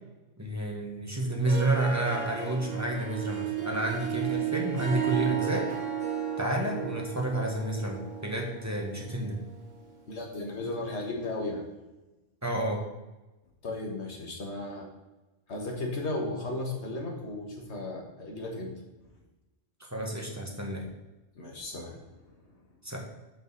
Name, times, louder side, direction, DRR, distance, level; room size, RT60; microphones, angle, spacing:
voice 1, 0.4-5.7 6.4-9.4 12.4-12.8 19.8-20.8 22.8-23.0, right 1 dB, 15° right, 0 dB, 1.2 m, -30 dB
Harp, 1.3-9.9, right 8 dB, 70° right, 1.9 m, -34 dB
voice 2, 10.1-11.6 13.6-14.9 15.5-18.7 21.4-22.3, left 2 dB, 60° left, 0 dB, 1.8 m, -35 dB
7.8 x 5.5 x 4.0 m, 1.1 s
omnidirectional pair, 1.3 m